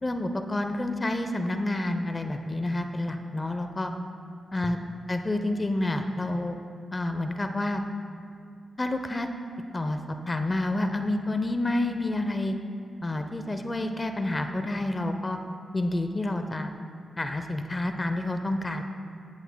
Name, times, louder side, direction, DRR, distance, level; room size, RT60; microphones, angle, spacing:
voice 1, 0.0-3.9 4.5-4.8 5.1-6.6 6.9-7.8 8.8-9.3 9.7-10.0 10.3-12.6 13.0-15.4 15.7-16.7 17.2-18.8, left 1 dB, 25° left, 6 dB, 0.6 m, -29 dB
15.5 x 10.5 x 2.2 m, 2.4 s
cardioid pair, 70°, 0 cm